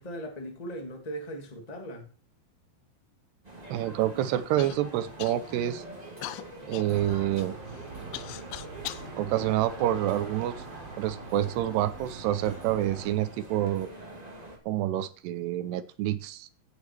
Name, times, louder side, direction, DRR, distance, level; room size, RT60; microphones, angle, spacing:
voice 1, 0.0-2.1, right 1 dB, 55° left, 0.4 m, -38 dB
sound 1, 3.4-14.6, right 1 dB, 15° right, 1.4 m, -45 dB
voice 2, 3.7-5.8 6.7-7.6 9.2-10.5 11.0-13.9 14.7-16.5, right 13 dB, 80° right, 2.8 m, -28 dB
Human voice / Cough, 4.6-4.8 5.2-5.7 6.2-9.1 9.8-10.6 11.4-11.5 12.2-12.5, left 15 dB, 85° left, 2.9 m, -41 dB
sound 2, 6.9-13.1, right 4 dB, 40° right, 3.5 m, -44 dB
15.5 x 8.5 x 4.5 m
omnidirectional pair, 4.9 m